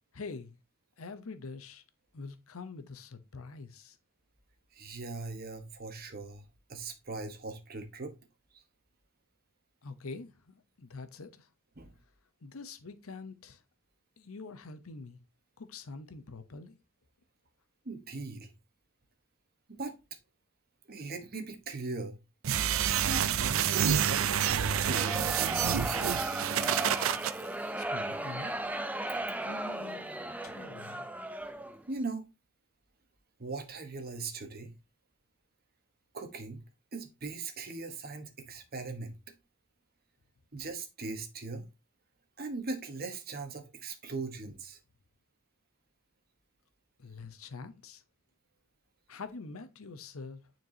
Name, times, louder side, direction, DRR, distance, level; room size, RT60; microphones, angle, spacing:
voice 1, 0.1-0.6 1.0-1.8 2.1-4.0 9.8-11.5 12.4-13.6 14.2-15.2 15.6-16.7 27.8-28.5 29.4-30.1 30.4-31.1 47.0-48.0 49.1-50.4, left 4 dB, 85° left, 0.8 m, -45 dB
voice 2, 4.7-6.4 6.7-8.1 8.5-8.6 11.8-11.9 17.8-18.5 19.7-19.9 20.9-22.2 23.0-25.5 31.9-32.3 33.4-34.7 36.1-36.6 36.9-39.1 40.5-41.6 42.4-44.8, right 3 dB, 45° right, 1.2 m, -40 dB
sound 1, 22.4-27.3, right 9 dB, 75° right, 0.4 m, -28 dB
sound 2, 24.6-31.8, right 1 dB, 5° right, 0.5 m, -36 dB
9.1 x 4.5 x 2.8 m
head